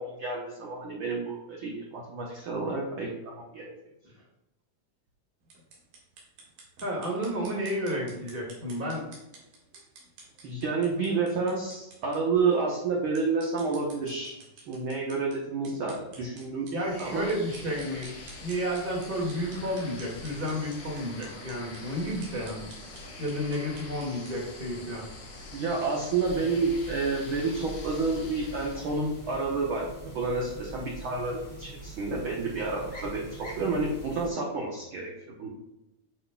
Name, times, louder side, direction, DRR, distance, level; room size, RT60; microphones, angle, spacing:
voice 1, 0.0-3.7 10.4-14.4 14.7-16.7 17.0-17.3 25.5-35.5, right 4 dB, 60° right, -2 dB, 1.4 m, -30 dB
sound 1, 5.4-24.4, right 3 dB, 85° right, 3.5 m, -52 dB
voice 2, 6.8-9.1 16.7-18.1 18.4-22.7 23.2-25.1, equal, 20° right, -2 dB, 1.8 m, -31 dB
sound 2, 16.7-29.4, left 2 dB, 55° left, 1.2 m, -45 dB
sound 3, 26.2-34.3, right 1 dB, 20° left, 1.2 m, -43 dB
9.9 x 5.7 x 2.3 m, 0.92 s
omnidirectional pair, 3.7 m